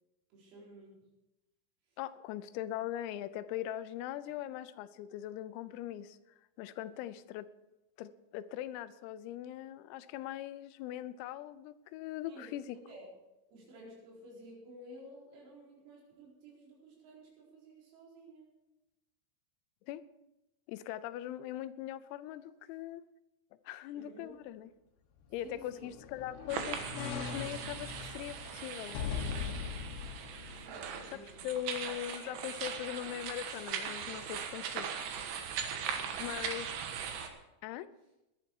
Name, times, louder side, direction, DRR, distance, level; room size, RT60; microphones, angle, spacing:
voice 1, 0.3-1.0 12.3-12.5 12.9-13.1 13.5-18.5 23.9-24.4 25.4-25.9 30.5-31.6 35.7-36.4, right 1 dB, 85° right, -3 dB, 7.1 m, -53 dB
voice 2, 2.0-6.2 6.6-7.5 8.0-12.8 19.9-20.1 20.7-23.0 23.7-24.7 25.3-29.1 31.1-34.9 36.2-36.7 37.6-37.9, left 12 dB, 85° left, 14 dB, 3.4 m, -41 dB
sound 1, 25.2-31.6 32.0-32.1, left 7 dB, 65° left, 2.8 m, -41 dB
sound 2, 26.5-37.3, right 7 dB, 70° right, 3.3 m, -40 dB
19.0 x 11.5 x 4.7 m, 0.96 s
omnidirectional pair, 6.0 m